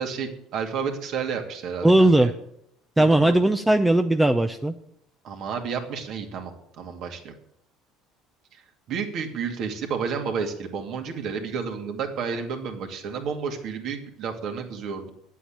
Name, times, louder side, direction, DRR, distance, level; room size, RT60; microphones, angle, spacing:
voice 1, 0.0-2.3 3.0-3.4 5.2-7.3 8.9-15.1, right 6 dB, 55° right, 4 dB, 2.5 m, -31 dB
voice 2, 1.8-2.3 3.0-4.7, right 1 dB, 10° right, 8 dB, 0.6 m, -18 dB
10.0 x 8.3 x 8.9 m, 0.75 s
cardioid pair, 115°, 0 cm